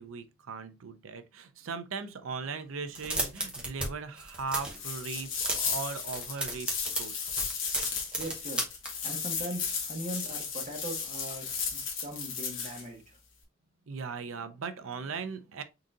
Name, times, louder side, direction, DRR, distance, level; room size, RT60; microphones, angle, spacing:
voice 1, 0.0-6.7 7.0-7.3 13.9-15.6, right 5 dB, 90° right, 0.5 m, -38 dB
sound 1, 2.9-3.9 4.1-4.8 5.2-5.8 6.1-8.9, right 1 dB, 5° right, 0.9 m, -33 dB
sound 2, 4.7-12.8, left 6 dB, 70° left, 1.3 m, -35 dB
voice 2, 8.2-8.7 9.0-11.5 11.7-13.2, right 1 dB, 35° right, 1.3 m, -40 dB
3.9 x 3.8 x 2.4 m
head